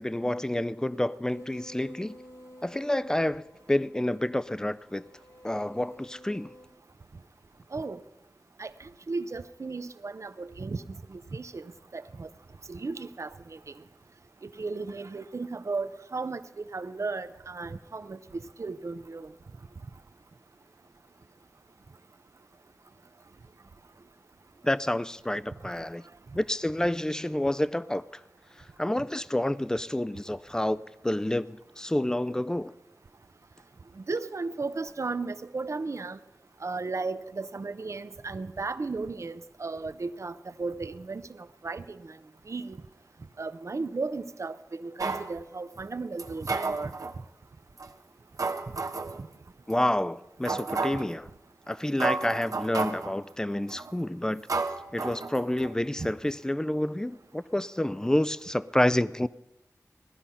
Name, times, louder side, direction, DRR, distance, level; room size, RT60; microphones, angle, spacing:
voice 1, 0.0-2.1 2.6-5.1 5.4-6.5 24.6-26.0 26.3-28.0 28.8-32.7 49.7-51.3 51.7-54.4 54.9-59.3, left 1 dB, 10° left, 0.5 m, -29 dB
sound 1, 1.2-6.7, equal, 80° left, 4.4 m, -51 dB
voice 2, 9.1-10.8 11.1-11.7 11.9-12.3 12.7-13.6 14.6-16.4 16.7-18.2 18.6-19.3 34.0-36.2 36.6-41.2 41.6-42.0 42.5-42.8 43.4-46.9, right 3 dB, 60° right, 0.7 m, -35 dB
sound 2, 45.0-45.3 46.2-47.2 47.8-47.9 48.4-49.2 49.7-49.8 50.4-51.1 51.7-51.8 52.0-53.1 53.7-54.0 54.5-55.7 56.0-56.1, right 3 dB, 80° right, 1.1 m, -32 dB
17.5 x 12.0 x 5.7 m
wide cardioid pair, 70°, 6 cm